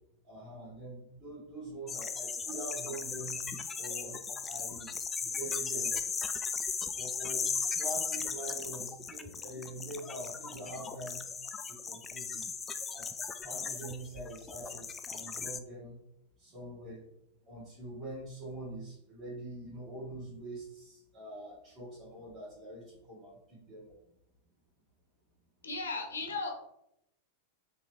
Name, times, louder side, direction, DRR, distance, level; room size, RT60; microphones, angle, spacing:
voice 1, 0.2-3.4 3.8-4.9 5.2-6.0 6.9-7.5 7.7-11.3 11.7-12.5 12.9-13.1 13.4-16.0 16.4-17.0 17.4-24.0, right 1 dB, 35° right, -9 dB, 1.5 m, -44 dB
sound 1, 1.9-15.6, left 5 dB, 20° left, 0.3 m, -37 dB
voice 2, 25.6-26.5, left 3 dB, 70° left, 4 dB, 0.8 m, -36 dB
3.7 x 3.3 x 3.1 m, 0.79 s
figure-of-eight pair, 90°, 0 cm